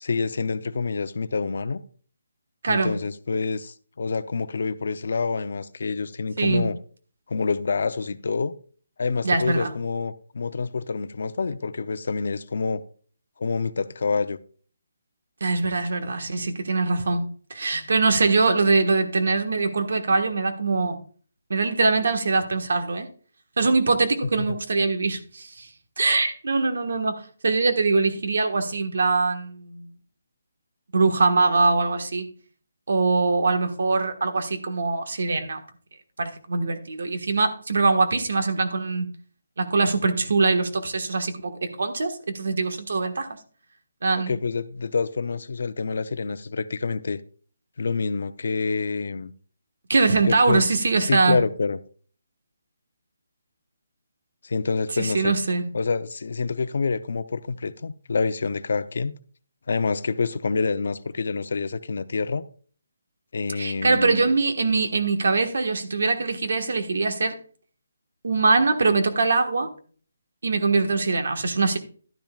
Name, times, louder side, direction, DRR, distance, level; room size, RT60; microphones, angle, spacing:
voice 1, 0.0-1.8 2.7-6.8 7.3-8.6 9.0-12.8 13.4-14.4 24.5-24.6 44.2-47.2 47.8-49.3 50.3-50.6 51.1-51.8 54.4-55.3 55.7-59.2 59.7-62.4 63.3-64.3, left 4 dB, 55° left, 0.6 m, -27 dB
voice 2, 6.4-6.7 9.2-9.7 15.4-21.0 21.5-23.1 23.6-25.7 26.0-29.8 30.9-32.3 32.9-35.6 36.2-39.1 39.6-43.4 44.0-44.3 49.9-51.4 54.9-55.6 63.6-67.4 68.2-69.7 70.4-71.8, right 3 dB, 65° right, 1.5 m, -23 dB
12.0 x 10.5 x 2.4 m
hypercardioid pair, 175°, 0 cm